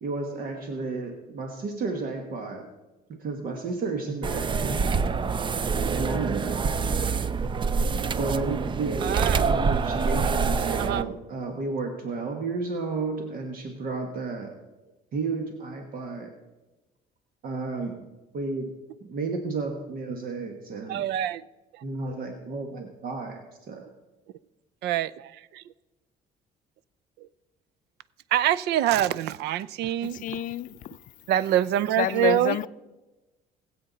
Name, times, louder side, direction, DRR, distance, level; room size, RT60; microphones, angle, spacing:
voice 1, 0.0-2.7 3.1-4.8 5.9-6.6 8.2-14.6 15.1-16.3 17.4-18.1 18.3-18.7 19.0-21.1 21.8-23.9, right 3 dB, 60° right, 1.4 m, -32 dB
sound 1, 4.2-11.0, right 5 dB, 30° right, 0.5 m, -26 dB
voice 2, 9.0-9.4 10.8-11.1 20.9-21.4 24.8-25.6 28.3-30.4 31.3-32.7, right 12 dB, 80° right, 0.5 m, -25 dB
voice 3, 30.1-31.0 32.0-32.7, left 12 dB, 50° left, 0.4 m, -28 dB
20.5 x 7.9 x 4.0 m
cardioid pair, 110°, 17 cm